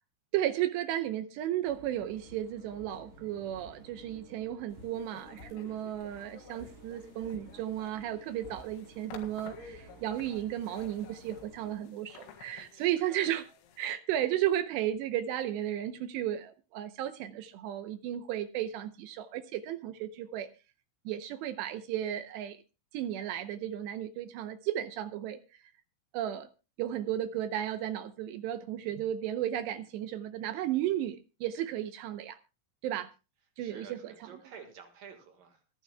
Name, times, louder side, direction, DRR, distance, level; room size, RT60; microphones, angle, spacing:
voice 1, 0.3-13.5 13.8-20.5 21.1-22.6 22.9-25.6 26.1-26.5 26.8-32.4 32.8-33.1 33.6-34.3, right 12 dB, 80° right, 10 dB, 2.5 m, -34 dB
sound 1, 1.6-11.8, right 1 dB, 40° right, 9.3 m, -54 dB
sound 2, 4.8-13.9, left 6 dB, 90° left, 4.5 m, -53 dB
voice 2, 33.6-35.6, right 6 dB, 60° right, 5 dB, 2.5 m, -50 dB
25.0 x 11.0 x 2.2 m, 0.30 s
omnidirectional pair, 5.8 m